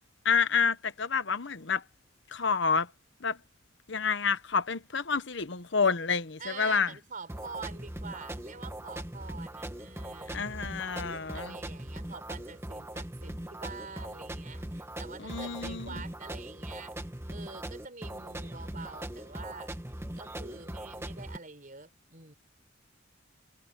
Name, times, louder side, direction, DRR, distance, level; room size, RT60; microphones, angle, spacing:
voice 1, 0.2-1.8 2.3-2.9 3.2-3.4 3.9-6.9 10.3-11.6 15.2-16.0, left 5 dB, 60° left, 1.0 m, -29 dB
voice 2, 6.4-10.5 11.3-16.9 17.3-19.7 20.1-22.3, right 4 dB, 40° right, 5.2 m, -46 dB
sound 1, 7.3-21.4, right 1 dB, 15° right, 1.4 m, -40 dB
head